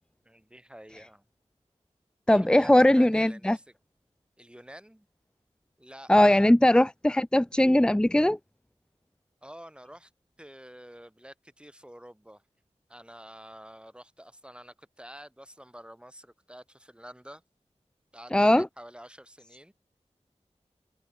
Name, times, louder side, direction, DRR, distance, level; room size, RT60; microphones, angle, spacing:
voice 1, 0.2-1.2 2.3-3.6 4.4-5.1 5.8-6.5 9.4-10.1 10.4-12.4 12.9-17.4 18.1-19.7, equal, 10° right, 5.5 m, -48 dB
voice 2, 2.3-3.6 6.1-8.4 18.3-18.7, left 1 dB, 5° left, 0.5 m, -20 dB
wide cardioid pair, 65°, 12 cm